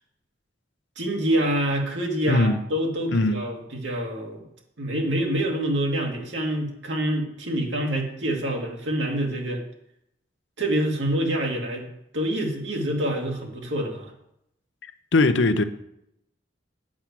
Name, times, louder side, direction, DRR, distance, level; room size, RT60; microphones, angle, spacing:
voice 1, 1.0-4.4 4.8-9.6 10.6-11.9 12.1-14.1, right 1 dB, 80° right, 2.1 m, -26 dB
voice 2, 2.3-2.6 3.1-3.4 15.1-15.6, left 2 dB, 80° left, 0.6 m, -20 dB
8.4 x 6.0 x 7.5 m
head